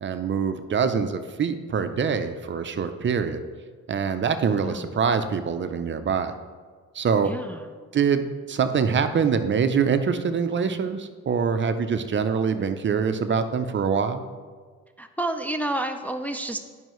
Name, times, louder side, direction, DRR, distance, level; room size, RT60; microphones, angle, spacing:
voice 1, 0.0-3.4 3.9-6.3 6.9-7.3 7.9-14.2, right 6 dB, 40° right, 9 dB, 0.6 m, -24 dB
voice 2, 7.3-7.6 15.0-16.6, right 1 dB, 5° left, 5 dB, 0.4 m, -30 dB
11.0 x 5.4 x 3.1 m, 1.6 s
cardioid pair, 90°, 30 cm